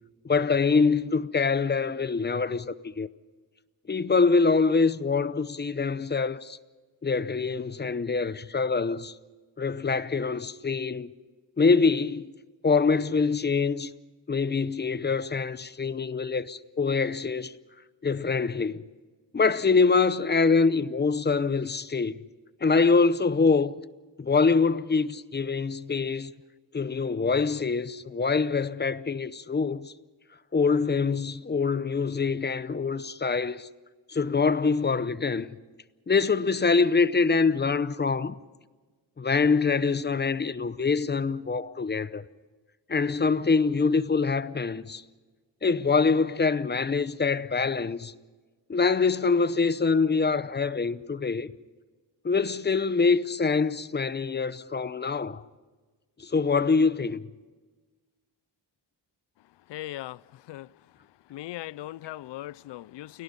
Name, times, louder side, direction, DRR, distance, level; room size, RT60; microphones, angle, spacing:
voice 1, 0.2-3.1 3.9-6.6 7.0-9.1 9.6-11.1 11.6-12.3 12.6-13.9 14.3-17.6 18.0-18.8 19.3-22.2 22.6-23.7 24.2-26.3 26.7-29.9 30.5-33.7 34.1-35.5 36.1-38.3 39.2-42.2 42.9-45.0 45.6-48.1 48.7-51.5 52.2-55.4 56.2-57.3, left 4 dB, 25° left, 0.7 m, -24 dB
voice 2, 59.7-60.7 61.3-63.2, left 15 dB, 70° left, 0.6 m, -39 dB
29.0 x 18.5 x 5.3 m
cardioid pair, 115°, 43 cm